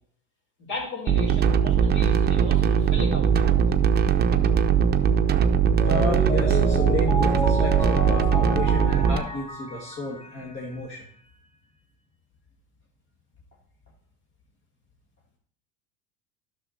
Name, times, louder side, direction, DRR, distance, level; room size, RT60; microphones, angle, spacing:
voice 1, 0.6-3.6, left 3 dB, 55° left, -2 dB, 4.5 m, -36 dB
sound 1, 1.1-9.2, right 7 dB, 30° right, 0.7 m, -20 dB
voice 2, 5.8-11.0, left 2 dB, 35° left, -1 dB, 1.7 m, -32 dB
Mallet percussion, 5.8-10.8, left 1 dB, 20° left, 1.4 m, -31 dB
11.0 x 6.5 x 4.3 m, 0.63 s
hypercardioid pair, 90°, 35 cm